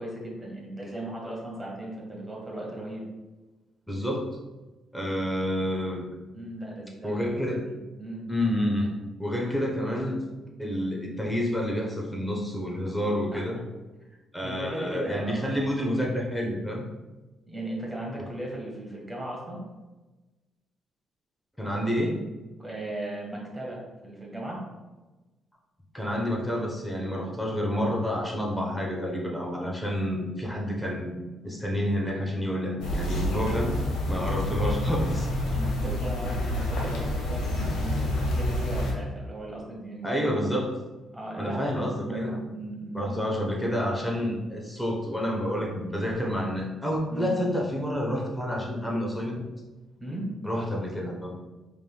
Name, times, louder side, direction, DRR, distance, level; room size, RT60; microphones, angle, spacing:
voice 1, 0.0-3.0 6.3-8.3 13.3-13.4 14.1-15.6 17.5-19.6 22.6-24.6 35.5-37.5 37.8-40.3 41.1-43.3 47.1-47.4 50.0-50.3, right 1 dB, 10° right, -3 dB, 1.5 m, -37 dB
voice 2, 3.9-4.3 4.9-6.0 7.0-7.7 8.3-8.9 9.2-10.2 10.6-13.6 14.3-16.8 21.6-22.2 25.9-31.1 31.4-33.8 34.1-35.3 40.0-40.8 41.4-42.4 42.9-49.5 50.4-51.4, equal, 5° left, -1 dB, 0.9 m, -29 dB
sound 1, 32.8-38.9, left 1 dB, 85° left, 1.1 m, -28 dB
5.0 x 3.4 x 2.3 m, 1.1 s
cardioid pair, 90°, 0 cm